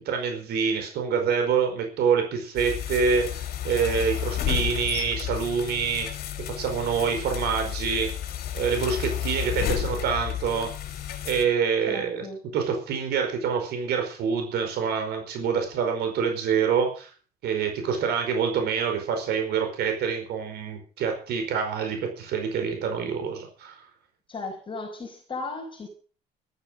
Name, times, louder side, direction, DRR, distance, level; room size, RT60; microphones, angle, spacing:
voice 1, 0.0-6.1 6.4-8.1 8.5-10.7 11.2-12.3 12.5-17.1 17.4-23.8, right 6 dB, 75° right, 4.9 m, -26 dB
sound 1, 2.6-11.5, left 11 dB, 65° left, 3.6 m, -31 dB
voice 2, 11.9-12.4 24.3-25.9, left 3 dB, 30° left, 5.1 m, -36 dB
13.5 x 13.0 x 6.4 m
cardioid pair, 110°, 17 cm